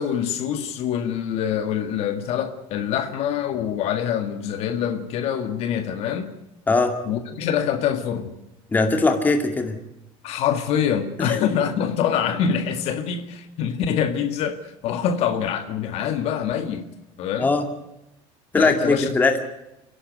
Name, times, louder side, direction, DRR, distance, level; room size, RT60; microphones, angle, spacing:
voice 1, 0.0-6.3 7.1-8.3 10.2-16.9 17.2-17.5 18.6-19.1, left 8 dB, 55° left, 1.8 m, -25 dB
voice 2, 8.7-9.7 11.2-11.4 17.4-17.7 18.5-19.4, left 3 dB, 15° left, 2.3 m, -20 dB
29.5 x 11.5 x 9.2 m
cardioid pair, 150°, 12 cm